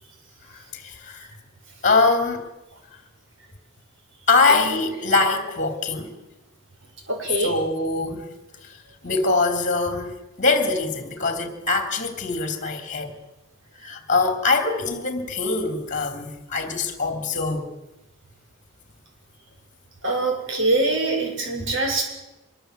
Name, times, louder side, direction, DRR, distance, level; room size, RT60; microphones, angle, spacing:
voice 1, 0.7-1.3 1.8-2.5 4.3-6.1 7.4-8.3 9.0-10.1 10.4-13.1 13.8-17.6, left 3 dB, 35° left, 3.1 m, -23 dB
voice 2, 4.5-4.8 7.1-7.5 20.0-22.0, right 2 dB, 60° right, 6.9 m, -24 dB
24.5 x 22.5 x 8.0 m
head